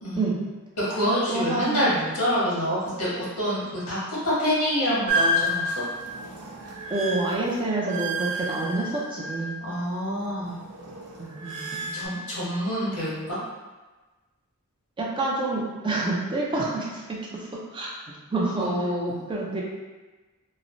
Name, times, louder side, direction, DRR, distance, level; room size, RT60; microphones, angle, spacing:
voice 1, 0.8-4.0 4.2-5.7 9.6-10.6 11.9-13.4 18.6-19.2, equal, 85° left, -8 dB, 1.2 m, -26 dB
voice 2, 1.3-1.8 6.9-9.6 11.2-11.9 15.0-17.9 18.3-18.7 19.3-19.6, right 2 dB, 20° right, -4 dB, 0.4 m, -28 dB
sound 1, 5.1-9.8 10.1-12.1, equal, 90° right, 0.5 m, -30 dB
2.9 x 2.1 x 2.5 m, 1.2 s
head